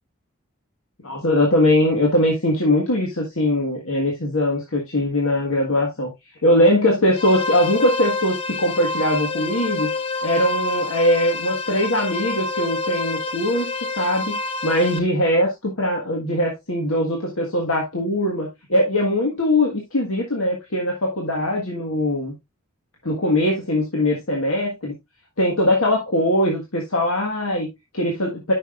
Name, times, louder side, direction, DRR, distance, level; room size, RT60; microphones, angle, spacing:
voice 1, 1.0-6.1 6.4-9.9 10.2-22.3 23.0-24.9 25.4-28.5, left 1 dB, 85° left, 1.6 m, -21 dB
sound 1, 7.1-15.0, left 3 dB, 25° left, 0.6 m, -27 dB
9.5 x 6.0 x 2.4 m
head